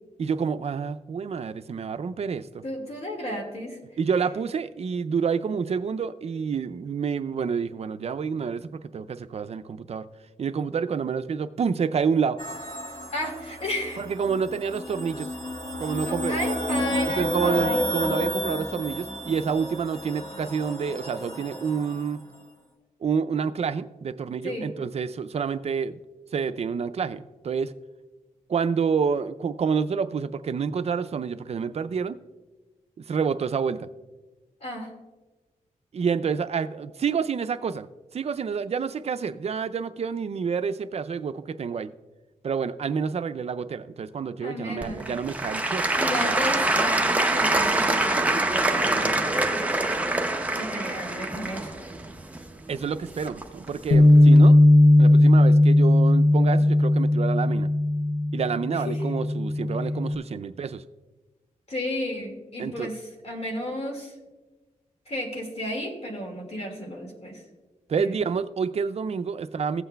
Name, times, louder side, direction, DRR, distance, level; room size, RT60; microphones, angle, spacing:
voice 1, 0.2-2.6 4.0-10.1 10.4-12.4 14.0-15.3 15.8-16.5 17.1-22.2 23.0-26.0 26.3-27.7 28.5-32.2 33.1-33.9 35.9-37.9 38.1-41.9 42.4-45.9 46.2-46.4 52.7-54.6 55.0-57.7 58.3-60.8 62.6-62.9 67.9-69.8, right 6 dB, 50° right, 11 dB, 0.4 m, -28 dB
voice 2, 2.6-3.8 13.1-14.0 16.0-17.9 24.4-24.7 34.6-34.9 44.4-45.0 45.9-50.0 50.5-51.8 58.9-59.0 61.7-64.1 65.1-67.4 68.0-68.2, left 1 dB, 50° left, 2 dB, 1.9 m, -33 dB
sound 1, 12.4-22.1, equal, 30° left, 1.8 m, -31 dB
Applause / Crowd, 44.8-53.7 54.3-54.4, right 2 dB, 10° right, 0.7 m, -25 dB
Bass guitar, 53.9-60.2, left 1 dB, 75° left, 0.7 m, -17 dB
15.5 x 8.0 x 2.2 m, 1.2 s
wide cardioid pair, 95°, 14 cm